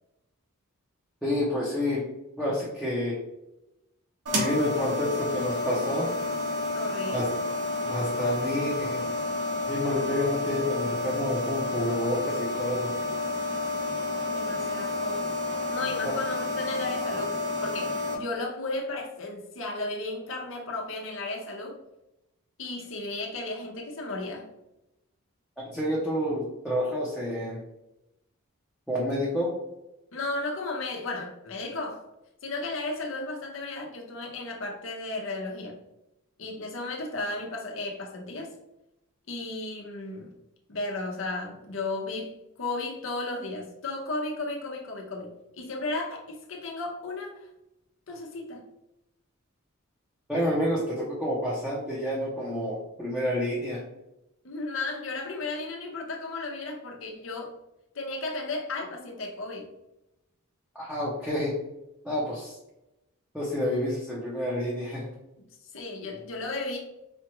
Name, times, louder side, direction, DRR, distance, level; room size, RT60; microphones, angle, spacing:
voice 1, 1.2-2.1 2.4-3.2 4.3-6.1 7.1-7.3 7.8-9.0 9.7-12.9 25.6-27.6 28.9-29.5 50.3-53.8 60.7-61.5 62.0-62.5 63.3-65.1, left 1 dB, ahead, -8 dB, 0.7 m, -29 dB
sound 1, 4.3-18.2, left 2 dB, 85° right, 1.0 m, -30 dB
voice 2, 6.7-7.3 14.3-15.4 15.7-17.4 17.6-21.8 22.6-24.5 30.1-32.1 32.4-35.8 36.4-38.5 39.3-40.3 40.7-47.5 48.1-48.7 54.4-57.6 57.9-59.7 65.7-66.8, left 2 dB, 60° left, 0 dB, 0.8 m, -34 dB
4.3 x 2.4 x 3.0 m, 0.90 s
head